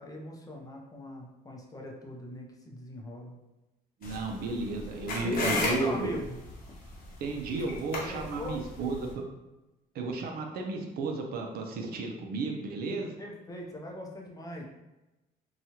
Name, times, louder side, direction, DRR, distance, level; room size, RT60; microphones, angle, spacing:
voice 1, 0.0-3.3 5.2-6.4 8.0-8.6 13.2-14.6, left 1 dB, 20° left, -1 dB, 0.5 m, -40 dB
sound 1, 4.0-9.1, left 2 dB, 60° left, 0.8 m, -36 dB
voice 2, 4.0-6.1 7.2-9.1 9.9-13.1, right 3 dB, 65° right, 2 dB, 0.5 m, -33 dB
2.9 x 2.3 x 2.8 m, 1.0 s
cardioid pair, 110°, 17 cm